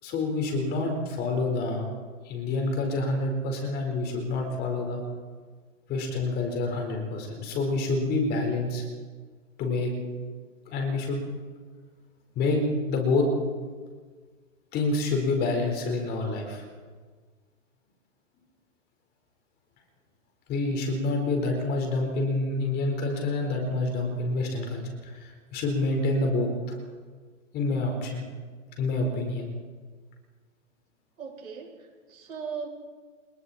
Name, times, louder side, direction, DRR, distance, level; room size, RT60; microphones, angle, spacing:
voice 1, 0.0-1.8 2.2-5.0 5.9-8.8 9.6-9.9 10.7-11.2 12.4-12.6 12.9-13.3 14.7-16.6 20.5-26.7 27.5-28.2 28.8-29.5, left 2 dB, 25° left, 2 dB, 4.5 m, -27 dB
voice 2, 31.2-32.7, right 6 dB, 85° right, -1 dB, 7.8 m, -38 dB
30.0 x 20.5 x 4.4 m, 1.5 s
hypercardioid pair, 150°, 41 cm